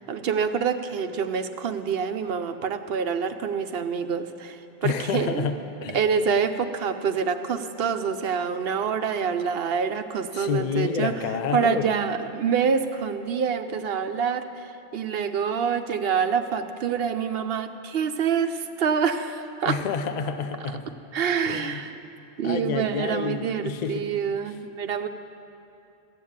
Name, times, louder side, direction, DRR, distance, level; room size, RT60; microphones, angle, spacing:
voice 1, 0.0-5.5 5.9-11.1 11.5-19.8 21.1-21.9 22.4-25.1, right 6 dB, 60° right, 9 dB, 0.9 m, -26 dB
voice 2, 4.8-6.0 10.3-11.9 19.7-20.8 21.4-21.8 22.4-24.1, left 6 dB, 45° left, 8 dB, 0.7 m, -29 dB
14.0 x 8.3 x 8.7 m, 2.7 s
omnidirectional pair, 1.2 m